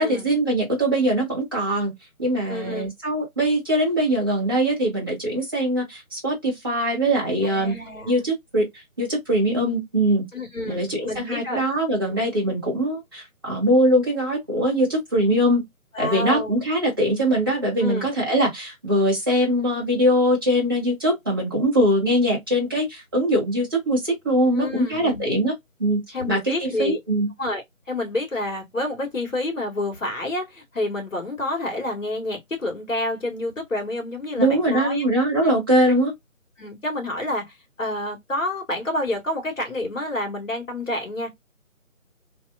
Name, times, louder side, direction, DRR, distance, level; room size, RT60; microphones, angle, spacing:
voice 1, 0.0-1.9 2.2-7.8 8.0-10.2 10.7-15.6 16.0-25.5 25.8-27.3 34.4-36.1, right 1 dB, 15° right, 1.3 m, -22 dB
voice 2, 2.5-2.9 7.4-8.1 10.3-11.6 12.1-12.2 15.9-16.5 17.8-18.1 24.5-25.2 26.1-27.0 27.4-35.1 35.4-35.5 36.6-37.5 37.8-41.3, left 2 dB, 65° left, 2.4 m, -28 dB
3.5 x 3.1 x 2.6 m
figure-of-eight pair, 180°, 42 cm